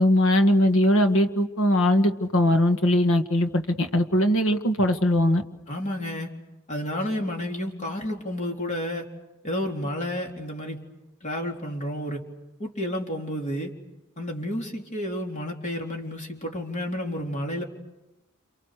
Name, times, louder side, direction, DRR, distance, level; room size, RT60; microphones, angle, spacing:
voice 1, 0.0-5.4, left 1 dB, 65° left, 7 dB, 1.8 m, -20 dB
voice 2, 5.7-6.3 6.7-9.1 9.4-10.8 11.2-12.2 12.6-13.7 14.2-17.6, left 1 dB, 35° left, 1 dB, 3.7 m, -31 dB
29.0 x 28.5 x 6.7 m, 0.98 s
head